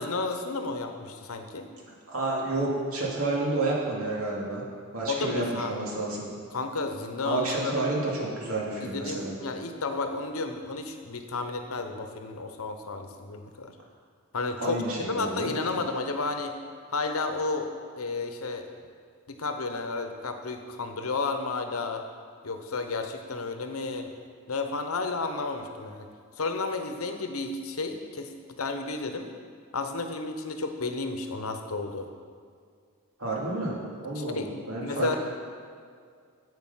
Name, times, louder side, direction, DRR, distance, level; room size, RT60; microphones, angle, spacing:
voice 1, 0.0-1.7 5.1-5.7 6.5-7.7 8.8-13.7 14.3-16.5 16.9-17.7 18.0-18.7 19.3-22.0 22.4-24.1 24.5-26.1 26.4-29.3 29.7-32.1 34.1-34.5 34.8-35.2, left 3 dB, 80° left, 6 dB, 0.9 m, -32 dB
voice 2, 2.1-4.6 4.9-6.3 7.2-9.4 14.6-15.8 33.2-35.2, right 2 dB, 80° right, -3 dB, 2.4 m, -30 dB
9.5 x 8.1 x 5.6 m, 2.2 s
head